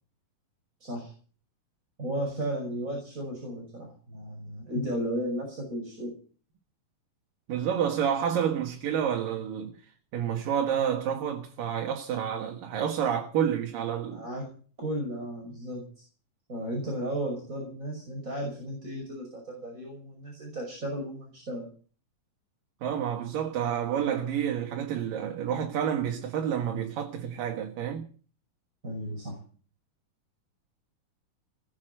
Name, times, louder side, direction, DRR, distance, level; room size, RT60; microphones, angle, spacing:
voice 1, 0.8-1.1 2.0-6.1 14.1-14.5 14.8-16.0 16.5-21.7 28.8-29.4, right 1 dB, 20° right, 6.2 m, -34 dB
voice 2, 7.5-9.8 10.1-14.2 22.8-28.1, right 8 dB, 85° right, 3.3 m, -29 dB
20.0 x 8.5 x 7.9 m
omnidirectional pair, 3.8 m